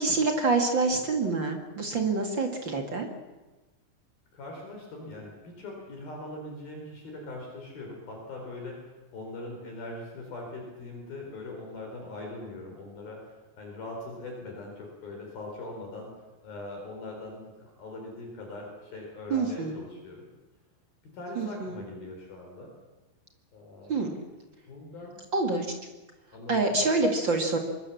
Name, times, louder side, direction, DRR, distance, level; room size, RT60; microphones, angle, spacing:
voice 1, 0.0-3.1 19.3-19.8 21.3-21.8 23.9-24.2 25.3-25.7 26.5-27.6, right 3 dB, 55° right, 3 dB, 1.3 m, -26 dB
voice 2, 4.3-16.1 16.4-20.3 21.1-22.7 23.5-24.0 24.7-25.2 26.3-26.9, left 2 dB, 50° left, 1 dB, 5.9 m, -41 dB
25.5 x 22.5 x 7.2 m, 1.1 s
omnidirectional pair, 5.7 m